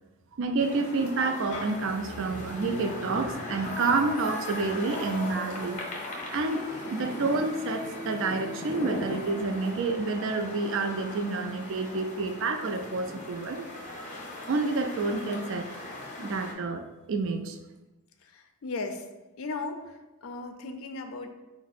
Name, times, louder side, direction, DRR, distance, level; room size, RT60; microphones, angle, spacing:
voice 1, 0.4-5.8 6.3-6.6 6.9-14.1 14.5-15.7 16.2-16.8 17.1-17.6, right 3 dB, 55° right, 5 dB, 0.4 m, -29 dB
sound 1, 0.6-16.5, left 1 dB, 35° left, 0.7 m, -38 dB
voice 2, 18.3-19.0 19.4-21.3, left 3 dB, 65° left, 6 dB, 0.4 m, -36 dB
4.5 x 2.0 x 4.1 m, 1.1 s
head